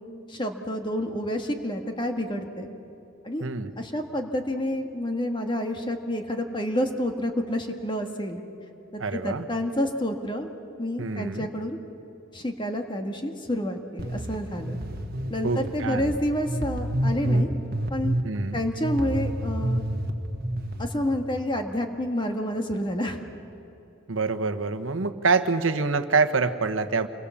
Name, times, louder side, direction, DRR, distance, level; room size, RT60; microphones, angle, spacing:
voice 1, 0.3-2.7 3.2-3.5 3.8-8.4 8.9-10.5 10.8-11.8 12.3-14.8 15.3-17.5 17.9-18.1 18.5-19.8 20.8-23.2, left 1 dB, 25° left, 4 dB, 1.7 m, -29 dB
voice 2, 3.4-3.7 9.0-9.5 11.0-11.5 15.4-16.1 18.2-18.6 24.1-27.1, right 4 dB, 85° right, 9 dB, 1.2 m, -26 dB
sound 1, 14.0-20.8, right 1 dB, 50° right, 1.4 m, -29 dB
28.0 x 22.0 x 7.2 m, 3.0 s
head